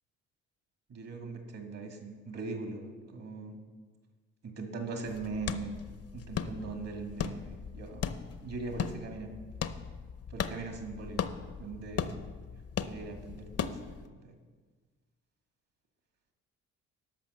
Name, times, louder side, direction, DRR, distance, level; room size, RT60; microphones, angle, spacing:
voice 1, 0.9-3.6 4.4-5.8 6.1-9.3 10.3-11.3 11.6-12.2 12.8-14.4, right 3 dB, 55° right, 3 dB, 2.2 m, -40 dB
sound 1, 5.0-14.1, left 7 dB, 50° left, 0.7 m, -38 dB
12.0 x 5.6 x 6.9 m, 1.4 s
cardioid pair, 90°, 30 cm